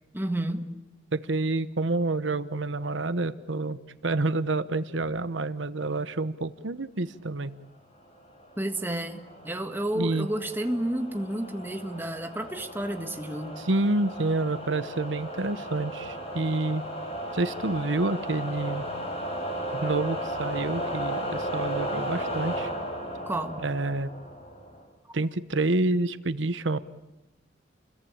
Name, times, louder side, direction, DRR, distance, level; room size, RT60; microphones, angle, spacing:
voice 1, 0.1-0.7 8.6-13.6 23.3-23.6, right 1 dB, 10° right, 5 dB, 1.7 m, -31 dB
voice 2, 1.1-7.5 9.9-10.3 13.6-16.8 17.3-18.9 19.7-22.7 23.6-24.1 25.1-26.8, right 2 dB, 75° right, 12 dB, 1.0 m, -28 dB
sound 1, 8.3-24.8, equal, 35° left, 7.1 m, -35 dB
29.5 x 22.0 x 8.8 m, 1.0 s
head